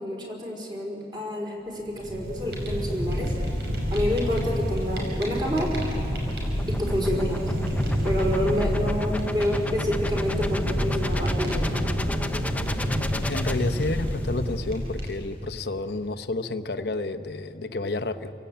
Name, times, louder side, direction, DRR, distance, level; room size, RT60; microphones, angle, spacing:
voice 1, 0.0-3.3 3.9-5.7 6.7-7.5 8.0-11.9, equal, 25° right, -1 dB, 4.4 m, -28 dB
Fire, 1.8-15.4, equal, 70° right, 5.7 m, -28 dB
sound 1, 4.7-14.3, left 1 dB, 10° left, 0.6 m, -36 dB
voice 2, 13.3-18.3, left 2 dB, 60° left, 9 dB, 0.9 m, -30 dB
28.5 x 17.0 x 8.6 m, 2.7 s
head